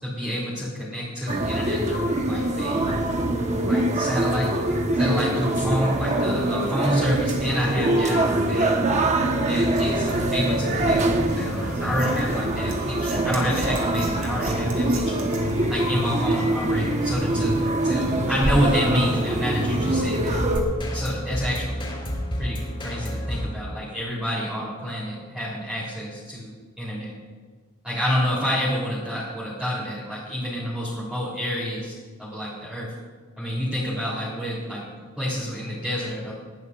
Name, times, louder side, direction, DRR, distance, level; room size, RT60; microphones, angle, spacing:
voice 1, 0.0-3.1 3.7-4.5 5.0-8.7 9.5-15.2 15.7-17.6 17.8-20.4 20.9-21.8 22.4-27.1 27.8-32.9 33.4-34.8 35.2-36.3, equal, 5° right, -8 dB, 3.0 m, -28 dB
sound 1, 1.3-20.6, right 1 dB, 35° right, 1.0 m, -24 dB
sound 2, 9.4-23.4, equal, 25° left, 3.9 m, -34 dB
sound 3, 9.8-16.1, right 1 dB, 85° right, 3.2 m, -37 dB
20.0 x 12.5 x 2.4 m, 1.5 s
head